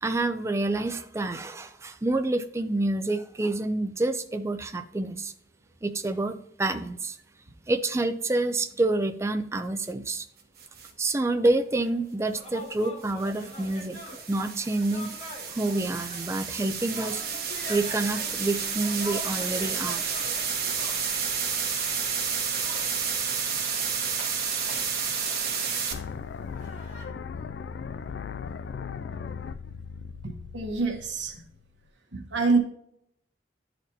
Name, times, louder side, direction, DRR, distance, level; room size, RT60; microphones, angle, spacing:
voice 1, 0.0-5.3 5.8-7.2 7.7-10.3 11.0-14.0 14.3-15.1 15.5-17.2 17.7-20.1, right 2 dB, 15° right, 0.4 m, -28 dB
sound 1, 10.6-10.9 13.0-25.9, right 6 dB, 55° right, 1.3 m, -31 dB
sound 2, 11.8-27.0, left 1 dB, 45° left, 2.0 m, -45 dB
sound 3, 25.9-31.9, left 6 dB, 70° left, 0.3 m, -38 dB
voice 2, 30.2-31.4 32.1-32.6, right 3 dB, 90° right, 1.2 m, -26 dB
11.5 x 4.2 x 2.8 m
head